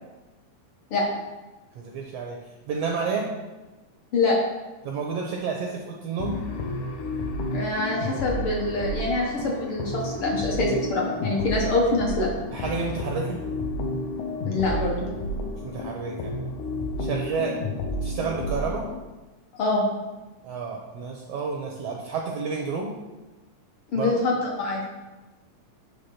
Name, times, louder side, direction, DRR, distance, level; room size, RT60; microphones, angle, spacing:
voice 1, 1.7-2.4 2.7-3.3 4.8-6.4 12.5-13.4 15.6-16.4 17.0-17.6 18.0-18.9 20.4-23.0 23.9-24.1, right 5 dB, 80° right, 0 dB, 1.5 m, -30 dB
sound 1, 6.2-19.0, left 1 dB, 75° left, 2.3 m, -31 dB
voice 2, 7.5-12.3 14.4-14.9 19.5-19.9 23.9-24.8, left 2 dB, 55° left, -2 dB, 1.6 m, -25 dB
8.3 x 3.3 x 5.6 m, 1.1 s
omnidirectional pair, 3.6 m